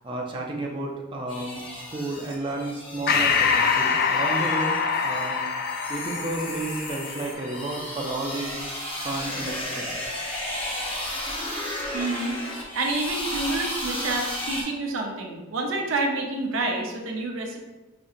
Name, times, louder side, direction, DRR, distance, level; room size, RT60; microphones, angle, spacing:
voice 1, 0.0-4.7 5.0-5.4 5.9-8.5 9.0-10.0, right 2 dB, 25° right, -1 dB, 0.4 m, -32 dB
sound 1, 1.3-14.6, left 1 dB, 25° left, 0.9 m, -34 dB
Breathing, 3.1-7.9, left 5 dB, 50° left, 0.3 m, -25 dB
voice 2, 11.9-17.6, right 2 dB, 75° right, 1 dB, 0.6 m, -28 dB
5.0 x 2.7 x 2.4 m, 1.2 s
head